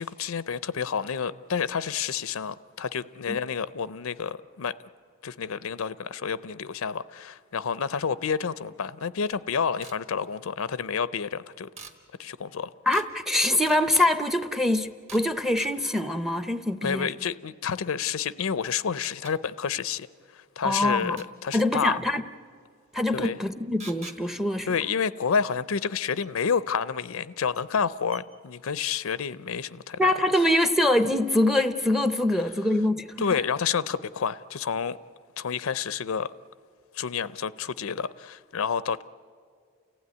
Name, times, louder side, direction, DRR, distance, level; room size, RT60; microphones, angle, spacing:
voice 1, 0.0-4.8 5.2-11.7 12.2-12.7 16.8-20.1 20.3-21.2 21.4-22.0 23.1-23.4 24.7-30.1 33.2-35.0 35.4-36.3 36.9-39.0, left 6 dB, 75° left, 0.5 m, -29 dB
sound 1, 9.8-10.0 11.8-12.0 12.9-13.1 13.4-14.1 15.1-15.3 15.6-15.7 18.0-18.1 19.0-19.3 21.2-21.6 23.8-24.2 26.2-26.3 27.3-27.4 27.8-27.9 28.1-28.2, right 4 dB, 30° right, 1.5 m, -44 dB
voice 2, 12.9-17.1 20.6-21.2 21.5-22.2 22.9-24.7 30.0-33.4, left 1 dB, ahead, 0.6 m, -24 dB
29.5 x 15.5 x 9.5 m
head